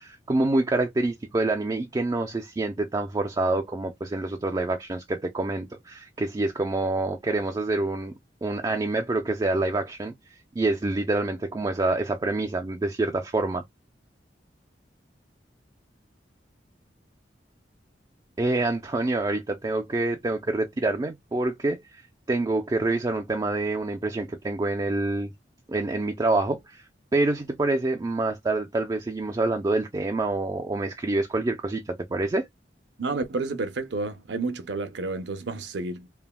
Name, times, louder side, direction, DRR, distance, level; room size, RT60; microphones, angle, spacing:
voice 1, 0.0-8.1 8.4-10.1 10.6-13.6 18.4-22.0 22.3-25.3 25.7-26.8 27.1-32.5, right 2 dB, 20° right, 0.4 m, -26 dB
voice 2, 33.0-36.1, right 3 dB, 70° right, 0.6 m, -30 dB
3.3 x 2.2 x 2.2 m
head